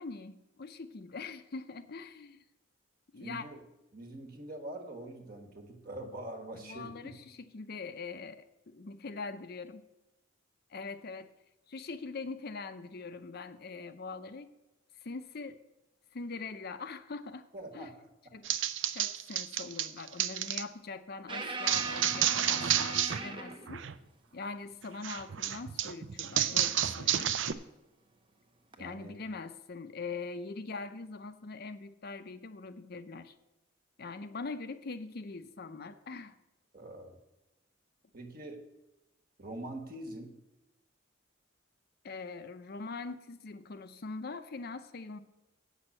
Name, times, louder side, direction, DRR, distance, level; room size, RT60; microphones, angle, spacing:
voice 1, 0.0-2.4 3.1-3.4 6.5-9.8 10.7-11.3 11.7-14.5 15.0-15.6 16.1-17.5 17.7-17.9 18.3-18.5 18.9-23.8 24.3-27.4 28.8-33.3 34.0-36.4 42.0-45.2, left 4 dB, 50° left, 10 dB, 0.5 m, -42 dB
voice 2, 3.2-3.6 3.9-7.1 17.5-18.1 28.8-29.1 36.7-37.2 38.1-38.6 39.4-40.3, right 1 dB, 45° right, 5 dB, 1.5 m, -44 dB
sound 1, 18.4-20.6 21.7-23.2 23.5-23.9 25.0-27.5, right 10 dB, 65° right, 0.5 m, -30 dB
sound 2, 21.3-23.8 26.8-26.9 28.7-28.9, right 2 dB, 25° right, 0.8 m, -40 dB
8.4 x 6.2 x 7.6 m, 0.98 s
head